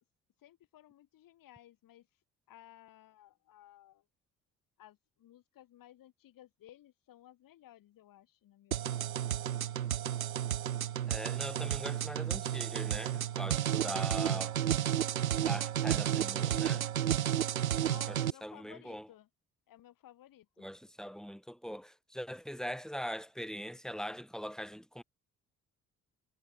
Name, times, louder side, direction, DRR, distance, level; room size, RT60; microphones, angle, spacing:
voice 1, 0.4-4.0 4.8-9.4 17.8-19.3 19.7-20.7, left 13 dB, 55° left, 3.2 m, -58 dB
sound 1, 8.7-18.3, right 10 dB, 90° right, 0.7 m, -32 dB
voice 2, 11.1-14.6 15.3-16.9 18.1-19.1 20.6-25.0, equal, ahead, 6.0 m, -42 dB
figure-of-eight pair, 50°, 41 cm